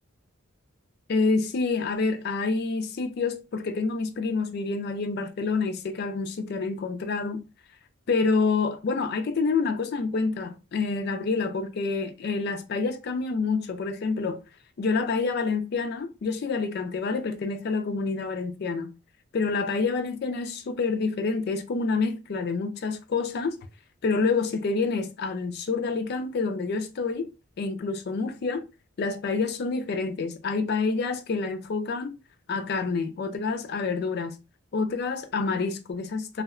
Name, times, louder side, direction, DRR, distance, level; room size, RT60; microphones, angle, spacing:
voice 1, 1.1-7.4 8.1-14.4 14.8-18.9 19.3-23.6 24.0-27.3 27.6-28.6 29.0-32.1 32.5-34.4 34.7-36.4, left 4 dB, 45° left, 0.3 m, -27 dB
2.7 x 2.1 x 2.4 m
head